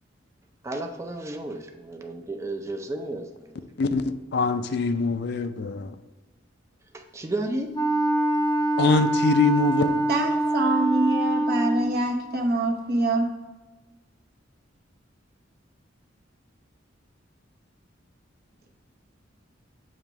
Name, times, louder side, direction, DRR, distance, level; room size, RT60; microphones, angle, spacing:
voice 1, 0.6-3.6 6.9-7.7, right 2 dB, 15° right, 3 dB, 0.4 m, -33 dB
voice 2, 3.8-5.9 8.8-10.0, left 4 dB, 55° left, 10 dB, 0.4 m, -24 dB
Wind instrument woodwind instrument, 7.7-12.0, right 1 dB, 20° left, 0.7 m, -24 dB
voice 3, 10.1-13.3, right 2 dB, 55° right, 2 dB, 0.8 m, -25 dB
7.3 x 3.0 x 4.6 m, 1.2 s
head